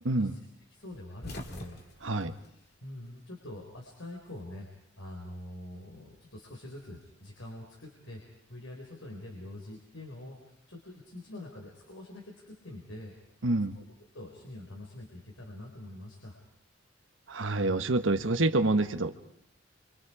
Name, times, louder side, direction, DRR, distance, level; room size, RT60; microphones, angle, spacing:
voice 1, 0.0-0.4 2.0-2.3 13.4-13.8 17.3-19.2, right 2 dB, 85° right, 8 dB, 1.4 m, -27 dB
voice 2, 0.7-1.8 2.8-4.7 5.0-8.2 8.5-13.1 13.7-13.8 14.1-16.4, left 1 dB, 85° left, 0 dB, 4.5 m, -45 dB
sound 1, 0.9-3.4 3.7-4.8 6.0-7.5, left 1 dB, 55° left, 2.5 m, -46 dB
29.0 x 26.0 x 5.0 m, 0.72 s
head